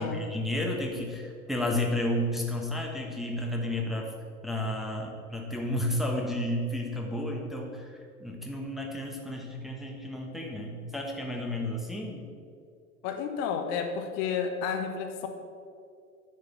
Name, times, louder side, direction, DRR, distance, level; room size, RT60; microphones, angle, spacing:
voice 1, 0.0-4.1 4.4-12.3, left 1 dB, ahead, -1 dB, 1.1 m, -32 dB
voice 2, 13.0-15.3, left 6 dB, 50° left, 5 dB, 1.1 m, -31 dB
9.3 x 5.0 x 5.9 m, 2.3 s
figure-of-eight pair, 80°, 44 cm